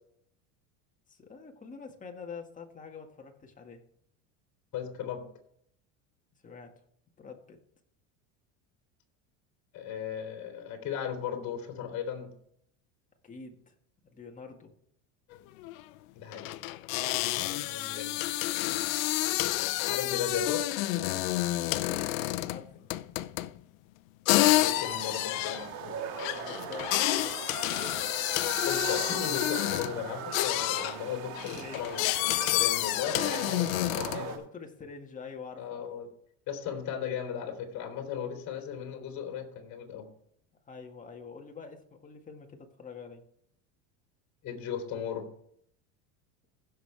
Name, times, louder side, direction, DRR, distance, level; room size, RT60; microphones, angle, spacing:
voice 1, 1.1-3.8 6.4-6.7 7.2-7.6 13.2-13.7 14.0-14.7 21.6-22.7 26.3-27.4 31.6-32.0 34.3-35.9 40.7-43.2, left 5 dB, 20° left, 3 dB, 1.8 m, -46 dB
voice 2, 4.7-5.3 9.7-12.3 16.1-16.5 17.4-18.2 19.9-20.7 24.4-26.0 28.5-34.4 35.6-36.1 36.5-40.1 44.4-45.3, left 8 dB, 45° left, 4 dB, 3.1 m, -36 dB
sound 1, 15.3-15.4 15.6-15.8 16.3-22.6 22.9-23.6 24.3-30.0 30.3-31.0 31.3-34.3, left 17 dB, 85° left, 0.7 m, -29 dB
sound 2, 24.4-34.4, right 7 dB, 70° right, 2.1 m, -40 dB
16.0 x 6.7 x 3.4 m, 0.68 s
supercardioid pair, 130°, 40 cm